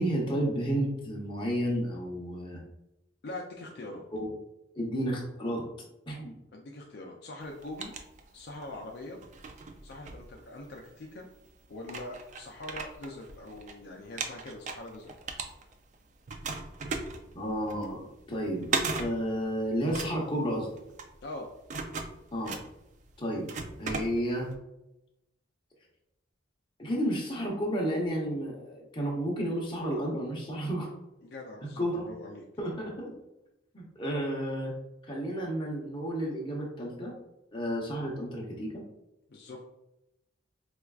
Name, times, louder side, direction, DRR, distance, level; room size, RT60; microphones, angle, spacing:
voice 1, 0.0-2.6 4.1-4.3 4.7-5.6 6.1-6.4 17.3-18.7 19.0-20.7 22.3-22.6 23.2-23.5 23.8-24.5 26.8-30.9 31.8-32.0 32.6-33.1 33.7-34.7 35.1-37.1 37.5-38.7, equal, 25° left, -2 dB, 0.8 m, -31 dB
voice 2, 3.2-4.0 6.5-7.9 8.3-9.2 9.8-11.3 11.7-15.1 21.2-21.5 31.2-32.4 39.3-39.7, left 2 dB, 55° left, 0 dB, 0.4 m, -43 dB
sound 1, 7.4-8.7 9.2-10.9 11.5-11.6 11.8-13.7 14.0-15.9 16.3-24.5, right 4 dB, 40° right, 0.3 m, -37 dB
4.4 x 2.3 x 2.3 m, 0.88 s
head